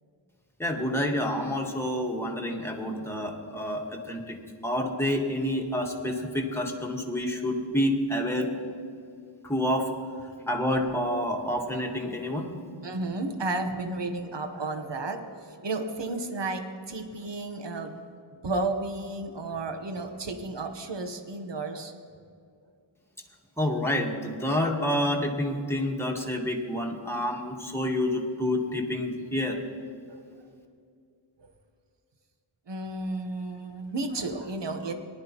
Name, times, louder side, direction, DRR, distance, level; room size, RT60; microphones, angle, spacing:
voice 1, 0.6-4.4 4.6-8.5 9.4-9.9 10.5-12.5 23.6-29.6, left 1 dB, 5° left, 0 dB, 1.5 m, -28 dB
voice 2, 12.8-18.1 18.4-21.9 30.1-30.4 31.4-31.5 32.7-34.9, right 2 dB, 60° right, 7 dB, 1.1 m, -33 dB
18.5 x 11.0 x 3.0 m, 2.3 s
wide cardioid pair, 70°, 50 cm